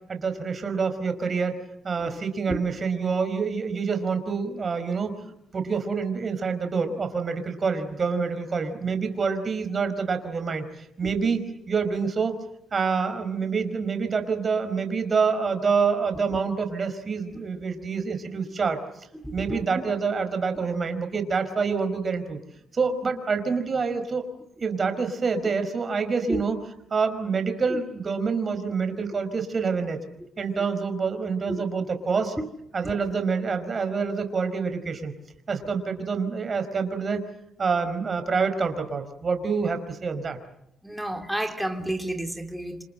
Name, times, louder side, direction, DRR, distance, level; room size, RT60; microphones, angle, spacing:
voice 1, 0.1-1.6 1.8-11.4 11.7-12.4 12.7-18.8 19.3-22.4 22.7-24.3 24.6-26.6 26.9-30.0 30.4-32.3 32.7-35.1 35.5-37.2 37.6-40.4, right 5 dB, 35° right, 4.9 m, -27 dB
voice 2, 19.1-19.8 26.3-26.4 27.7-27.8 31.5-31.6 32.4-32.5 32.8-33.0 40.8-42.8, right 1 dB, 5° right, 3.1 m, -31 dB
27.5 x 27.0 x 7.9 m
cardioid pair, 105°, 0 cm